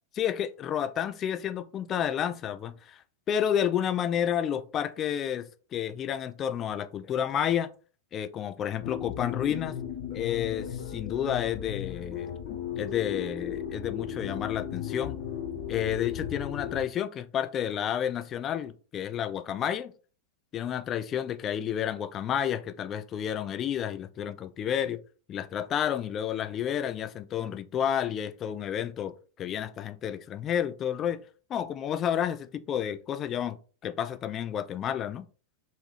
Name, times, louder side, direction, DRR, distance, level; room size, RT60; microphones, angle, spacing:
voice 1, 0.1-3.0 3.3-7.7 8.1-9.8 10.1-12.3 12.8-15.2 15.7-19.9 20.5-25.0 25.3-31.2 31.5-35.3, left 9 dB, 30° left, 0.3 m, -30 dB
sound 1, 8.8-16.8, left 9 dB, 50° left, 0.8 m, -35 dB
3.4 x 2.6 x 3.2 m
figure-of-eight pair, 90°, 0 cm